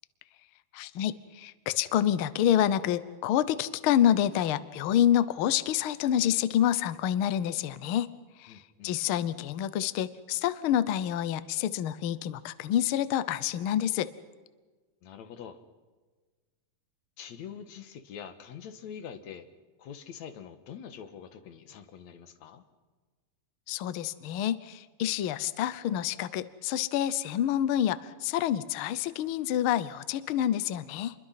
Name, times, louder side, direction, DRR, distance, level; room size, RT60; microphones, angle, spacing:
voice 1, 0.7-8.1 8.4-14.1 23.7-31.1, left 11 dB, 90° left, 15 dB, 1.1 m, -28 dB
voice 2, 8.5-8.9 15.0-15.6 17.2-19.5 19.8-22.6, left 8 dB, 65° left, 9 dB, 2.6 m, -44 dB
28.0 x 22.5 x 5.7 m, 1.3 s
omnidirectional pair, 3.6 m